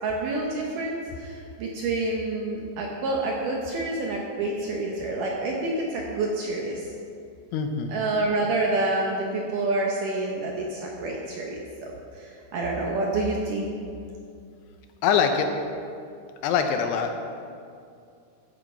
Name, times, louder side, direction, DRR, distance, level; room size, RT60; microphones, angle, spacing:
voice 1, 0.0-6.9 7.9-13.7, right 2 dB, 70° right, -1 dB, 2.1 m, -28 dB
voice 2, 7.5-7.9 15.0-15.5 16.4-17.1, left 7 dB, 80° left, 6 dB, 2.8 m, -23 dB
15.0 x 8.8 x 4.4 m, 2.4 s
omnidirectional pair, 4.9 m